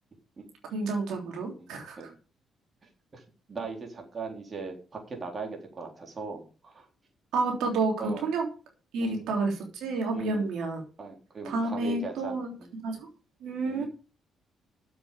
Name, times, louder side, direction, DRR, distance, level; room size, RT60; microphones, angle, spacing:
voice 1, 0.7-2.1 7.3-8.5 8.9-10.8 11.4-12.5 12.8-13.1 13.4-13.9, right 3 dB, 85° right, 2 dB, 3.3 m, -30 dB
voice 2, 1.6-2.1 2.8-3.2 3.5-6.9 8.0-8.3 9.0-9.3 10.1-10.5 11.0-12.3 12.6-12.7 13.6-13.9, right 4 dB, 35° right, 2 dB, 3.8 m, -39 dB
7.8 x 7.6 x 8.3 m, 0.37 s
cardioid pair, 90°, 0 cm